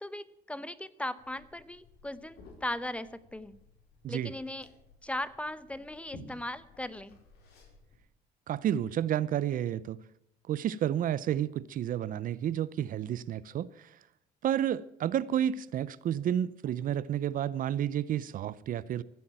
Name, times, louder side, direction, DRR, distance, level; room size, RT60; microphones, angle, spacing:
voice 1, 0.0-3.6 4.1-4.7 5.0-7.2, left 1 dB, 5° left, 0.9 m, -38 dB
Liquid, 1.2-8.0, left 2 dB, 75° left, 5.1 m, -55 dB
voice 2, 8.5-10.0 10.5-13.9 14.4-19.0, right 10 dB, 55° right, 0.6 m, -31 dB
15.0 x 8.4 x 9.0 m
cardioid pair, 95°, 17 cm